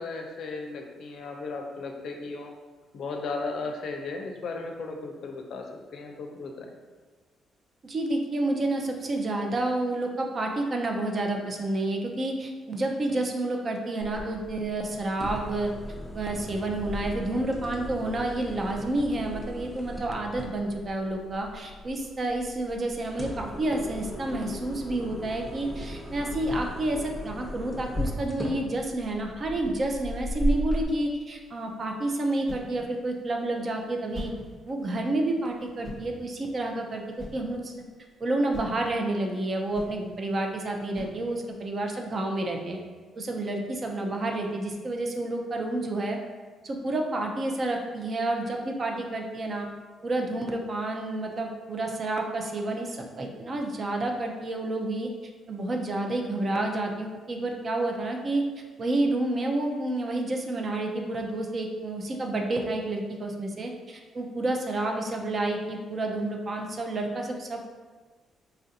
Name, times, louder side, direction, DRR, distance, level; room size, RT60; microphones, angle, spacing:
voice 1, 0.0-2.5 2.9-5.6 5.9-6.7, left 3 dB, 65° left, 3 dB, 0.5 m, -35 dB
voice 2, 7.8-15.7 16.1-34.3 34.7-37.0 37.3-37.7 38.2-42.8 43.2-46.2 46.6-49.7 50.0-55.1 55.5-58.4 58.8-67.7, right 2 dB, 40° right, 2 dB, 0.5 m, -29 dB
sound 1, 14.0-30.8, equal, ahead, 0.8 m, -36 dB
sound 2, 31.3-41.7, equal, 25° right, 1.1 m, -45 dB
4.2 x 2.5 x 2.7 m, 1.4 s
cardioid pair, 90°, 0 cm